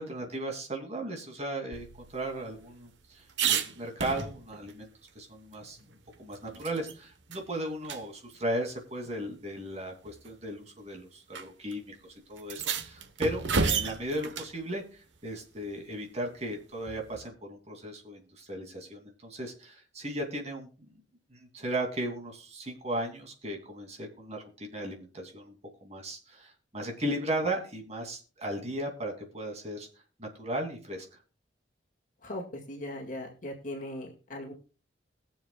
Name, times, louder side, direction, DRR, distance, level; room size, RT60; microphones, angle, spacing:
voice 1, 0.0-4.9 5.1-5.9 6.2-11.9 12.3-20.9 21.3-25.5 25.8-29.9 30.2-31.0, right 1 dB, 35° right, 2 dB, 2.6 m, -36 dB
sound 1, 1.7-4.7 5.1-5.2 5.5-7.0 7.3-7.4 7.8-8.0 9.0-9.1 10.0-10.3 11.3-11.4 11.7-11.8 12.4-14.6 16.8-17.3, right 5 dB, 80° right, 1.1 m, -33 dB
voice 2, 32.2-34.5, left 1 dB, 45° left, 1 dB, 2.0 m, -39 dB
21.5 x 7.2 x 2.3 m, 0.35 s
head